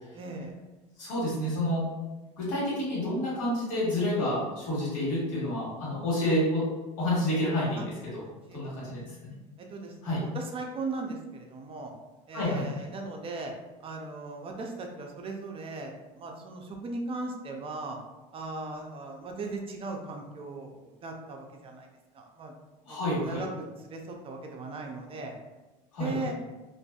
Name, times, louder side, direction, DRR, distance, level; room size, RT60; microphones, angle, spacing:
voice 1, 0.1-0.6 7.8-7.9 8.2-8.9 9.6-11.9 12.3-13.5 13.8-18.0 18.3-21.9 22.1-22.5 22.9-25.3 26.0-26.3, right 3 dB, 35° right, 2 dB, 0.4 m, -38 dB
voice 2, 1.0-1.9 2.4-6.7 7.0-8.1 8.5-9.3 10.0-10.2 12.3-12.6 22.9-23.4 25.9-26.2, left 1 dB, 85° left, -6 dB, 1.4 m, -29 dB
2.5 x 2.5 x 2.3 m, 1.1 s
supercardioid pair, 105°, 17 cm